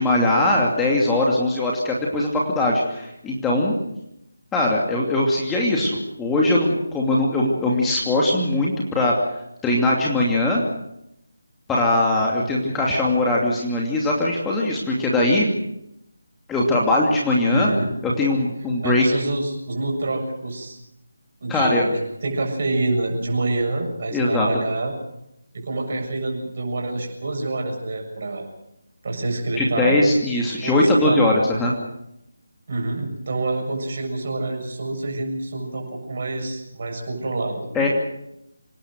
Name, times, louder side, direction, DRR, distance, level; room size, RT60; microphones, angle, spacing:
voice 1, 0.0-3.8 4.5-9.2 9.6-10.6 11.7-15.5 16.5-17.7 18.0-19.0 21.5-21.9 24.1-24.5 29.6-31.7 37.7-37.9, left 1 dB, 10° left, -3 dB, 2.7 m, -20 dB
voice 2, 17.5-17.9 18.8-20.8 21.4-21.9 22.2-24.9 25.5-28.5 29.0-30.2 30.6-31.2 32.7-37.9, right 2 dB, 45° right, 3 dB, 7.1 m, -27 dB
26.5 x 19.0 x 6.4 m, 0.82 s
figure-of-eight pair, 155°, 0 cm